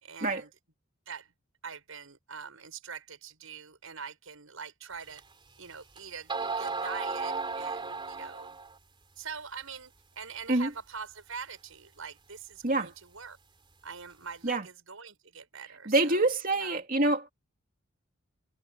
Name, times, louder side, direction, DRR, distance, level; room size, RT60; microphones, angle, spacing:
voice 1, 0.0-0.5 1.1-1.3 1.6-5.2 5.6-8.6 9.2-13.4 13.8-16.8, right 6 dB, 80° right, 5.8 m, -44 dB
sound 1, 5.2-5.3 6.0-6.1 6.3-8.8, right 4 dB, 25° right, 3.2 m, -34 dB
voice 2, 15.9-17.3, right 2 dB, 40° right, 2.4 m, -26 dB
head